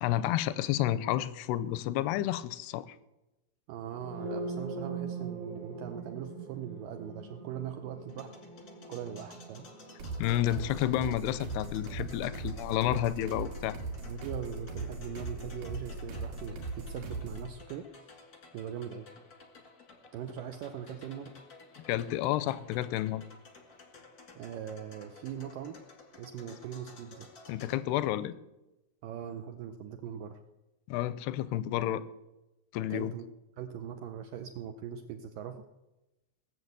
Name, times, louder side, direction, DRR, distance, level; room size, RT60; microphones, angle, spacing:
voice 1, 0.0-2.9 10.2-13.8 21.9-23.2 27.5-28.3 30.9-32.0 32.7-33.1, left 13 dB, 85° left, 16 dB, 2.6 m, -30 dB
voice 2, 3.7-8.3 8.9-9.7 14.1-17.9 18.5-19.1 20.1-21.3 24.4-25.8 26.2-27.3 29.0-30.4 32.9-33.3 33.6-35.6, right 9 dB, 80° right, 7 dB, 2.0 m, -41 dB
sound 1, 3.9-11.8, right 4 dB, 35° right, 1.5 m, -42 dB
sound 2, 8.1-27.8, left 3 dB, 45° left, 1.2 m, -54 dB
sound 3, 10.0-17.5, right 3 dB, 60° right, 3.6 m, -39 dB
17.5 x 7.4 x 8.0 m, 0.98 s
omnidirectional pair, 4.6 m